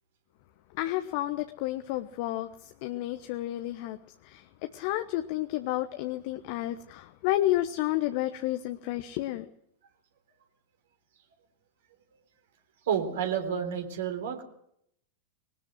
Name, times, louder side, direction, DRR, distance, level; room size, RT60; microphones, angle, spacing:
voice 1, 0.7-4.0 4.2-9.5, left 15 dB, 45° left, 9 dB, 1.1 m, -31 dB
voice 2, 12.9-14.4, right 8 dB, 60° right, 6 dB, 3.8 m, -30 dB
21.5 x 19.5 x 6.3 m, 0.72 s
figure-of-eight pair, 90°, 0 cm